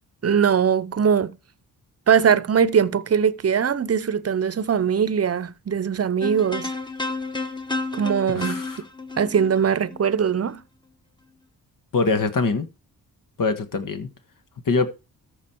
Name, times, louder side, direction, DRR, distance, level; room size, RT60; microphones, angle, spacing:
voice 1, 0.2-1.4 2.1-6.7 7.9-8.6 9.2-10.6, right 7 dB, 40° right, 0.8 m, -21 dB
sound 1, 6.2-10.5, left 3 dB, 10° left, 1.3 m, -31 dB
voice 2, 8.3-8.8 11.9-12.7 13.4-14.1 14.6-14.9, left 4 dB, 60° left, 1.7 m, -23 dB
13.5 x 5.3 x 4.6 m
cardioid pair, 70°, 37 cm